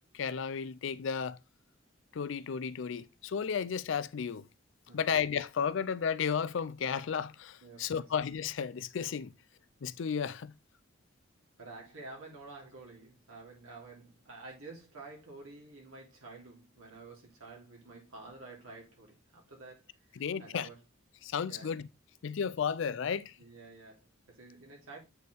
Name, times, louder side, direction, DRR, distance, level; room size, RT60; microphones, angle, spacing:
voice 1, 0.1-1.4 2.1-4.5 4.9-9.3 9.8-10.5 20.2-20.7 21.2-21.9 22.2-23.3, left 7 dB, 65° left, 0.4 m, -33 dB
voice 2, 7.6-8.1 11.6-19.8 20.1-20.8 21.5-21.7 23.4-25.0, right 3 dB, 90° right, 2.8 m, -50 dB
8.0 x 4.3 x 3.4 m
head